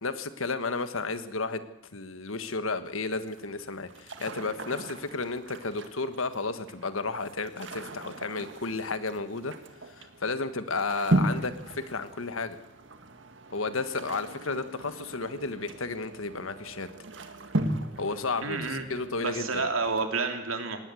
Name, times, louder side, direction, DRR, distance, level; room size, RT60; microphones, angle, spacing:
voice 1, 0.0-1.6 1.9-9.5 9.9-12.6 13.5-16.9 18.0-19.7, left 3 dB, 85° left, 11 dB, 1.5 m, -32 dB
sound 1, 3.2-20.0, right 1 dB, 65° right, 1.9 m, -36 dB
voice 2, 18.4-18.8 19.2-20.8, right 4 dB, 85° right, 5 dB, 3.1 m, -29 dB
19.0 x 18.0 x 7.8 m, 0.90 s
head